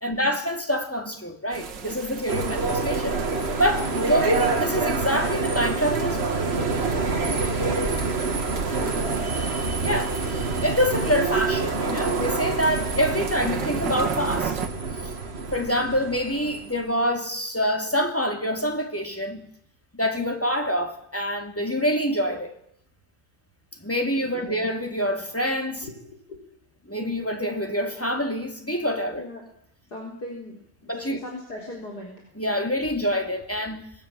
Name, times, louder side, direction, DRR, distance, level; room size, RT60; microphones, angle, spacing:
voice 1, 0.0-3.2 3.6-6.4 9.8-14.5 15.0-15.1 15.5-19.5 19.9-22.5 23.8-25.9 26.9-29.3 30.9-31.2 32.4-33.8, equal, 5° left, 2.6 m, -26 dB
sound 1, 1.5-14.7, right 6 dB, 80° right, 2.3 m, -36 dB
sound 2, 2.3-16.7, right 3 dB, 35° right, 2.0 m, -27 dB
voice 2, 8.5-9.4 24.3-24.7 25.8-26.4 29.2-29.4 29.9-30.6 30.9-32.2, left 1 dB, 60° left, 4.6 m, -40 dB
25.5 x 20.0 x 7.5 m
omnidirectional pair, 1.9 m